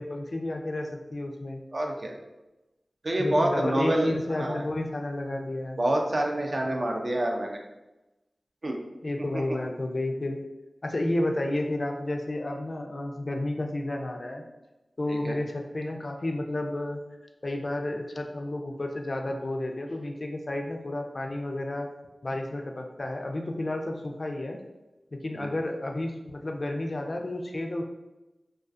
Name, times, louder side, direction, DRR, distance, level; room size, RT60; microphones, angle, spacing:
voice 1, 0.0-1.6 3.2-5.8 9.0-10.4 10.8-14.4 15.0-17.0 17.4-21.9 22.2-24.6 25.1-27.8, left 1 dB, 55° left, 3 dB, 0.3 m, -31 dB
voice 2, 1.7-2.1 3.0-4.1 4.4-4.6 5.8-7.6 8.6-8.8 9.3-9.4 15.1-15.4 25.3-25.5, right 1 dB, 55° right, 1 dB, 0.4 m, -27 dB
2.3 x 2.3 x 2.4 m, 1.0 s
wide cardioid pair, 60°, 0 cm